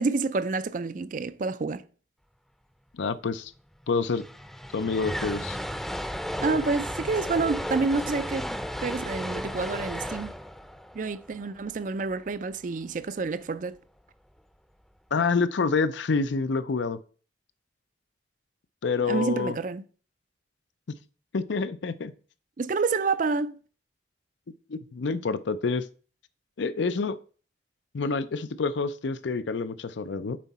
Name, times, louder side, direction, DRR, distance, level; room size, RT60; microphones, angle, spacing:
voice 1, 0.0-1.8 6.4-8.5 8.8-10.3 10.9-13.8 19.0-19.8 22.6-23.6, right 4 dB, 45° right, 0.4 m, -28 dB
voice 2, 2.9-3.5 3.9-4.2 4.7-5.6 15.1-17.0 18.8-19.5 21.3-22.1 24.7-25.9 26.6-27.2 27.9-30.4, left 4 dB, 75° left, 0.5 m, -27 dB
sound 1, 3.6-3.7 3.8-12.1, equal, ahead, 0.6 m, -34 dB
7.5 x 4.5 x 4.2 m
head